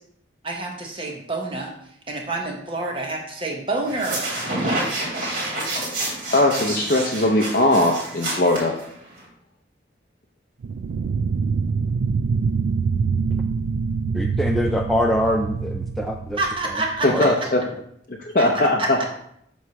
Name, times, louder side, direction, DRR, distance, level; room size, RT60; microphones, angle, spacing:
voice 1, 0.4-4.3 16.4-17.5 18.4-19.0, right 2 dB, 30° right, 0 dB, 1.1 m, -28 dB
sound 1, 3.9-9.2, right 1 dB, 50° right, 3.0 m, -28 dB
voice 2, 6.3-8.7 17.0-17.6 18.1-19.0, left 1 dB, 50° left, 0 dB, 0.6 m, -19 dB
sound 2, 10.6-17.1, right 5 dB, 80° right, 0.3 m, -25 dB
voice 3, 14.1-16.4 17.1-17.3, equal, ahead, 1 dB, 0.3 m, -23 dB
7.9 x 3.2 x 5.8 m, 0.71 s
head